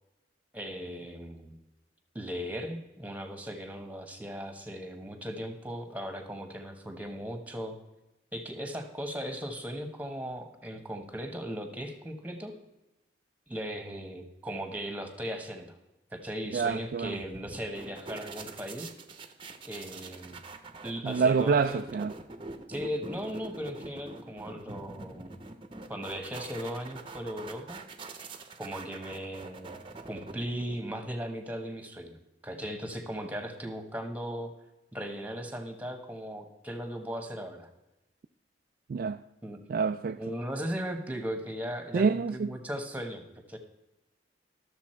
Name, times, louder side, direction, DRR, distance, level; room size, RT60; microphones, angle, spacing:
voice 1, 0.5-1.6 2.1-7.8 8.3-12.5 13.5-15.8 16.1-18.9 19.6-20.4 20.8-21.8 22.7-25.4 25.9-27.8 28.6-29.8 30.1-32.2 32.4-34.5 34.9-37.7 39.4-39.6 40.2-43.2 43.5-43.6, equal, 10° right, 1.3 m, -37 dB
voice 2, 16.5-17.2 21.0-22.1 38.9-39.2 39.7-40.2 41.9-42.5, right 5 dB, 50° right, 0.3 m, -27 dB
sound 1, 16.7-31.1, right 3 dB, 30° right, 0.8 m, -45 dB
12.5 x 7.1 x 4.4 m
head